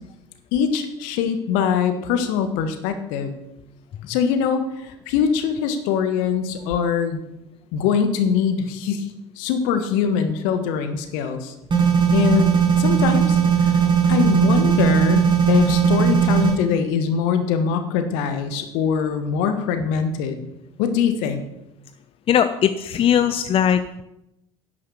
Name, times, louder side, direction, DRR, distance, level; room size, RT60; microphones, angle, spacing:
voice 1, 0.5-3.3 4.1-7.2 7.7-9.1 9.4-11.5 12.1-12.5 12.8-13.8 14.1-20.4 20.8-21.4, left 7 dB, 60° left, 8 dB, 1.5 m, -22 dB
sound 1, 11.7-16.5, right 7 dB, 30° right, 5.3 m, -18 dB
voice 2, 22.3-24.0, left 9 dB, 35° left, 11 dB, 0.8 m, -19 dB
10.5 x 9.5 x 6.8 m, 0.86 s
figure-of-eight pair, 65°, 15 cm